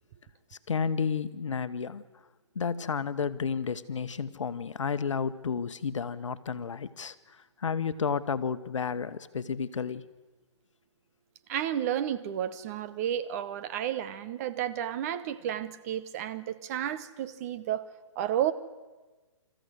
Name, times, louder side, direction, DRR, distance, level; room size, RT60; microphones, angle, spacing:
voice 1, 0.5-2.0 2.5-10.0, left 6 dB, 75° left, 13 dB, 1.2 m, -32 dB
voice 2, 11.5-17.9 18.2-18.5, right 10 dB, 30° right, 12 dB, 1.0 m, -32 dB
26.5 x 14.5 x 8.0 m, 1.3 s
hypercardioid pair, 150°, 16 cm